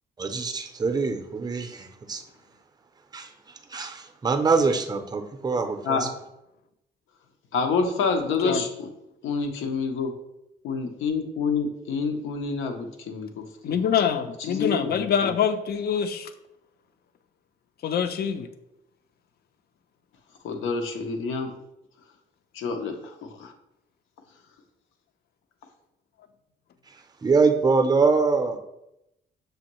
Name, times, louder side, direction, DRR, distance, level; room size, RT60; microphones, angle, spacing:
voice 1, 0.2-2.2 3.1-6.1 27.2-28.6, right 4 dB, 20° right, 7 dB, 0.5 m, -24 dB
voice 2, 7.5-8.9 9.2-10.1 10.6-13.8 14.5-15.3 20.4-21.5 22.5-23.5, left 4 dB, 85° left, 5 dB, 0.7 m, -28 dB
voice 3, 13.6-16.3 17.8-18.5, left 7 dB, 55° left, 9 dB, 0.5 m, -25 dB
6.3 x 2.6 x 3.0 m, 0.86 s
cardioid pair, 90°, 20 cm